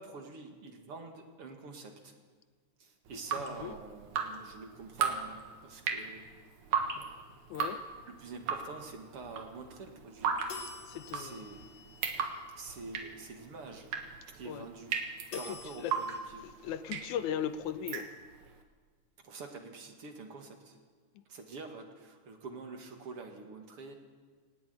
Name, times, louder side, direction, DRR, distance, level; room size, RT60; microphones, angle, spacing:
voice 1, 0.0-2.1 2.8-6.3 6.9-7.2 8.1-10.4 11.1-11.6 12.5-13.9 14.3-15.0 15.3-16.5 19.2-20.8 21.3-23.9, right 4 dB, 55° right, 4 dB, 2.8 m, -46 dB
Drip, 3.1-18.5, right 6 dB, 90° right, 3.1 m, -37 dB
voice 2, 7.5-7.8 10.9-11.4 14.5-14.7 15.3-15.4 15.8-15.9 16.6-18.1, left 9 dB, 85° left, 11 dB, 2.3 m, -37 dB
sound 1, 10.5-12.7 15.3-16.2, left 4 dB, 65° left, 4.3 m, -48 dB
18.0 x 18.0 x 9.4 m, 1.5 s
omnidirectional pair, 3.3 m